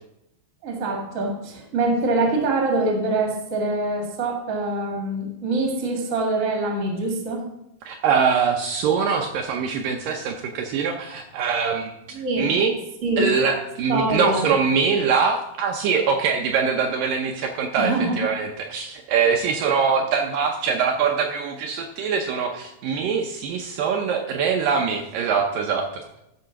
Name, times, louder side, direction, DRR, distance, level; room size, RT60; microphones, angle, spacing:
voice 1, 0.6-7.4 12.1-12.5 13.0-13.3 13.9-14.4 17.8-18.2, right 2 dB, 30° right, 1 dB, 1.6 m, -24 dB
voice 2, 7.9-11.9 12.4-12.8 13.2-17.9 18.2-26.0, right 6 dB, 75° right, 3 dB, 2.2 m, -23 dB
13.0 x 4.9 x 5.8 m, 0.86 s
omnidirectional pair, 4.4 m